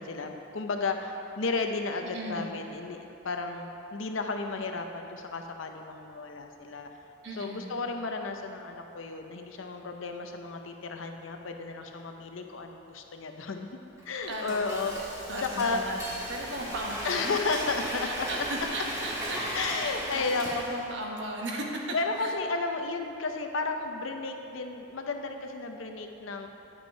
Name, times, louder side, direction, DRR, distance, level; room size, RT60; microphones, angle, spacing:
voice 1, 0.0-6.9 7.4-13.8 14.0-16.0 17.0-18.3 19.5-20.5 21.9-26.5, left 3 dB, 80° left, 5 dB, 0.7 m, -33 dB
voice 2, 2.1-2.5 7.2-7.8 14.2-14.9 15.3-17.4 18.0-19.4 19.8-21.8 22.2-22.3, right 1 dB, 65° right, -1 dB, 1.2 m, -36 dB
Frying (food), 14.0-21.0, right 1 dB, 15° right, 1.7 m, -37 dB
9.7 x 5.4 x 5.6 m, 2.9 s
head